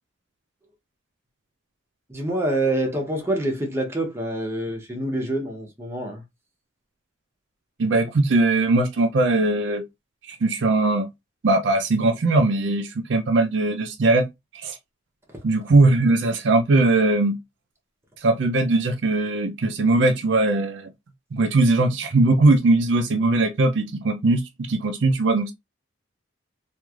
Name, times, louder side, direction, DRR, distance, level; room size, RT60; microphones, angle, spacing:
voice 1, 2.1-6.2 15.3-15.4, right 1 dB, 15° right, 0.7 m, -26 dB
voice 2, 7.8-9.8 10.3-11.1 11.4-14.3 14.5-14.8 15.4-17.4 18.2-20.9 21.3-24.4 24.7-25.5, right 2 dB, 60° right, 0.4 m, -20 dB
3.1 x 2.5 x 2.3 m
head